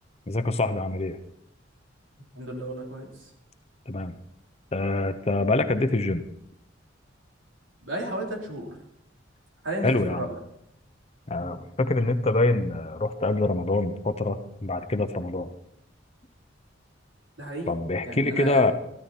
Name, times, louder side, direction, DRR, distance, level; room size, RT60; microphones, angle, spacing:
voice 1, 0.3-1.2 3.9-4.1 4.7-6.2 9.8-10.2 11.3-15.5 17.7-18.7, left 2 dB, 35° left, 9 dB, 0.8 m, -25 dB
voice 2, 2.3-3.3 7.8-8.8 9.6-10.4 11.4-11.6 17.4-17.8 18.1-18.7, right 1 dB, 85° right, 0 dB, 3.5 m, -33 dB
14.0 x 13.0 x 4.3 m, 0.76 s
head